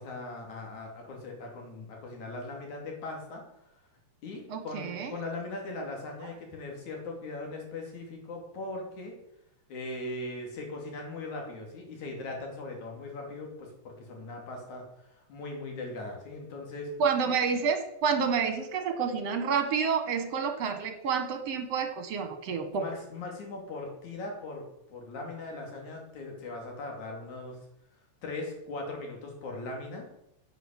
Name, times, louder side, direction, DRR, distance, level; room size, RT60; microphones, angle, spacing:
voice 1, 0.0-3.7 4.2-9.1 9.7-16.9 17.3-17.4 22.7-27.6 28.2-30.1, left 2 dB, 75° left, 1 dB, 4.2 m, -39 dB
voice 2, 4.5-5.1 17.0-22.8, right 6 dB, 60° right, 7 dB, 2.4 m, -29 dB
10.5 x 8.1 x 7.5 m, 0.83 s
omnidirectional pair, 3.4 m